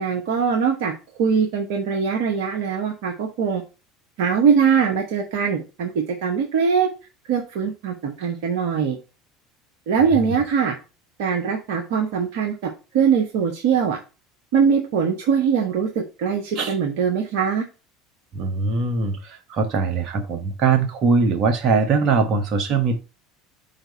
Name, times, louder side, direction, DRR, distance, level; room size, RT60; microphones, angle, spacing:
voice 1, 0.0-3.6 4.2-6.9 7.3-9.0 9.9-10.8 11.2-14.0 14.5-17.6, right 6 dB, 65° right, 2 dB, 0.9 m, -22 dB
voice 2, 18.3-23.0, right 4 dB, 50° right, 6 dB, 1.2 m, -21 dB
4.5 x 4.0 x 5.2 m, 0.32 s
hypercardioid pair, 70°, 0 cm